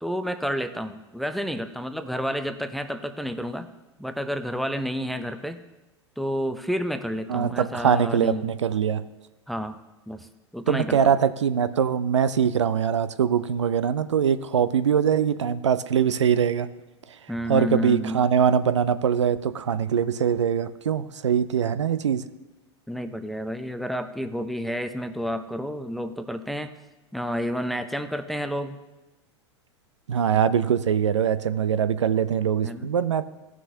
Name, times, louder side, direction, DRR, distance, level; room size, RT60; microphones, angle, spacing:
voice 1, 0.0-3.7 4.0-5.6 6.2-8.5 9.5-9.8 10.1-11.2 17.3-18.2 22.9-26.7 27.1-28.8 32.6-32.9, equal, ahead, 8 dB, 0.5 m, -30 dB
voice 2, 7.3-9.0 10.7-16.7 17.5-22.2 30.1-33.2, right 8 dB, 80° right, 13 dB, 0.5 m, -22 dB
16.0 x 6.2 x 2.7 m, 1.0 s
figure-of-eight pair, 95°, 15 cm